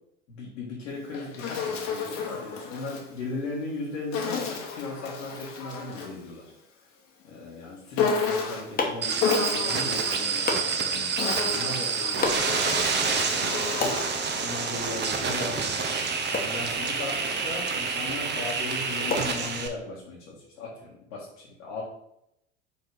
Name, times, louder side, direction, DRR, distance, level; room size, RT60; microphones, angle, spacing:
voice 1, 0.3-6.5 7.2-14.1 14.4-15.8 16.3-21.8, left 3 dB, 70° left, -6 dB, 1.8 m, -38 dB
Insect, 0.9-3.1 4.1-6.2 8.0-8.8 9.2-10.3 11.0-14.2, left 5 dB, 50° left, 1.4 m, -31 dB
sound 1, 8.1-20.0, left 3 dB, 25° left, 1.3 m, -37 dB
sound 2, 9.0-19.7, right 5 dB, 30° right, 0.9 m, -28 dB
5.4 x 3.6 x 4.7 m, 0.78 s
figure-of-eight pair, 75°, 37 cm